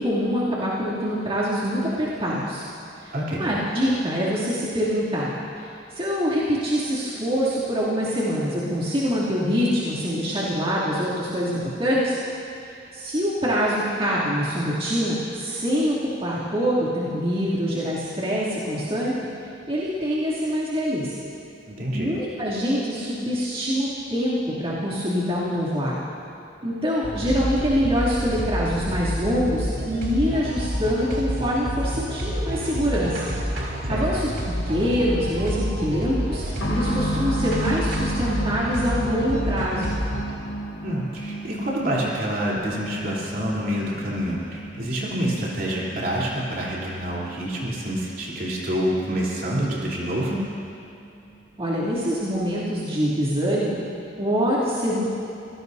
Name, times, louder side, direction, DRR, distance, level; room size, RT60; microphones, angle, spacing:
voice 1, 0.0-2.6 3.0-5.3 5.6-12.2 12.9-15.9 16.2-19.1 19.7-21.1 21.9-25.9 26.6-33.3 33.9-34.3 34.7-39.9 51.6-53.8 54.2-55.1, equal, 35° right, -9 dB, 2.9 m, -25 dB
voice 2, 3.1-3.4 21.7-22.1 33.8-34.0 40.8-50.4, equal, 55° right, -6 dB, 3.6 m, -27 dB
sound 1, 27.0-40.3, equal, 70° right, 3.3 m, -28 dB
sound 2, 36.6-51.0 51.3-51.4 52.3-52.5, equal, 85° left, 1.5 m, -34 dB
26.0 x 17.5 x 2.8 m, 2.8 s
head